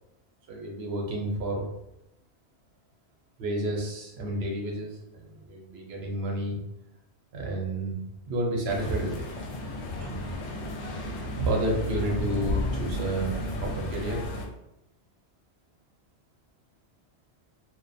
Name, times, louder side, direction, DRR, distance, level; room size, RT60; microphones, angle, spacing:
voice 1, 0.5-1.7 3.4-6.6 7.3-8.0 8.3-9.2 10.0-10.2 11.0-13.3 13.6-14.2, right 1 dB, 65° right, -1 dB, 0.8 m, -30 dB
sound 1, 8.7-14.5, left 1 dB, 75° left, 0.8 m, -33 dB
2.3 x 2.2 x 2.5 m, 0.86 s
omnidirectional pair, 1.2 m